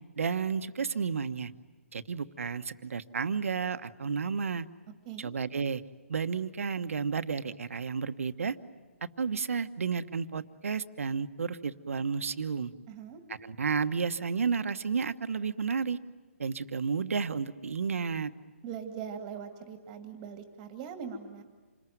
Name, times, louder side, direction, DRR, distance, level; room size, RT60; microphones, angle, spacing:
voice 1, 0.2-1.5 1.9-4.7 5.2-5.8 6.1-8.6 9.2-12.7 13.4-16.0 16.4-18.3, right 5 dB, 70° right, 11 dB, 1.2 m, -32 dB
voice 2, 12.9-13.2 18.6-21.4, right 7 dB, 20° right, 6 dB, 2.2 m, -41 dB
27.5 x 21.0 x 9.3 m, 1.3 s
hypercardioid pair, 155°, 8 cm